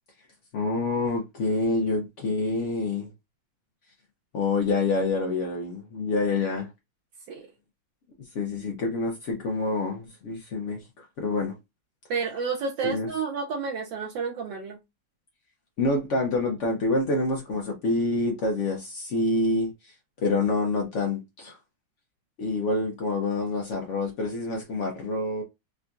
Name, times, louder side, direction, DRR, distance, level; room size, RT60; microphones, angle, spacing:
voice 1, 0.5-3.1 4.3-6.7 8.3-11.5 12.8-13.1 15.8-19.9 20.2-21.6 22.4-25.4, left 2 dB, 85° left, 0.6 m, -27 dB
voice 2, 12.1-14.8, right 5 dB, 75° right, 1.3 m, -30 dB
3.7 x 2.2 x 2.5 m
omnidirectional pair, 2.1 m